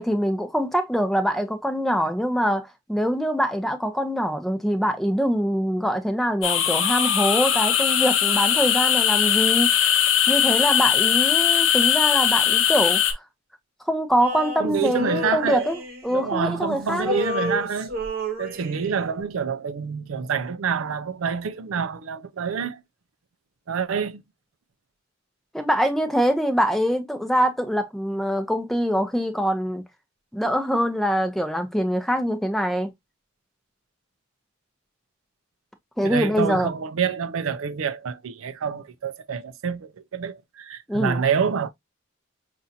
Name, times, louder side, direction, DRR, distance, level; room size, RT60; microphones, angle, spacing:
voice 1, 0.0-9.7 10.3-13.2 13.9-15.8 16.0-17.2 25.5-29.8 30.3-32.9 36.0-36.7 40.9-41.2, equal, ahead, 0.6 m, -24 dB
sound 1, 6.4-13.1, left 9 dB, 70° left, 0.7 m, -20 dB
Male singing, 14.2-16.6 16.9-19.1, left 1 dB, 50° right, 1.0 m, -31 dB
voice 2, 14.6-15.7 16.1-17.9 18.4-22.8 23.7-24.2 36.0-41.7, right 6 dB, 85° right, 0.5 m, -27 dB
5.6 x 2.5 x 2.6 m
head